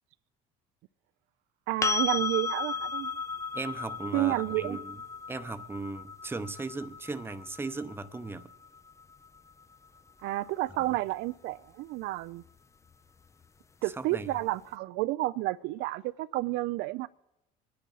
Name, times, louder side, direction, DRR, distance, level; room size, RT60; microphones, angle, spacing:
voice 1, 1.7-3.1 4.1-4.8 10.2-12.4 13.8-17.1, right 17 dB, 70° right, 0.4 m, -30 dB
sound 1, 1.8-9.6 12.5-12.6, left 5 dB, 15° left, 0.4 m, -35 dB
voice 2, 3.5-5.0 5.3-8.5 13.9-14.3, right 3 dB, 10° right, 0.7 m, -37 dB
23.5 x 10.0 x 3.9 m
supercardioid pair, 100°, 19 cm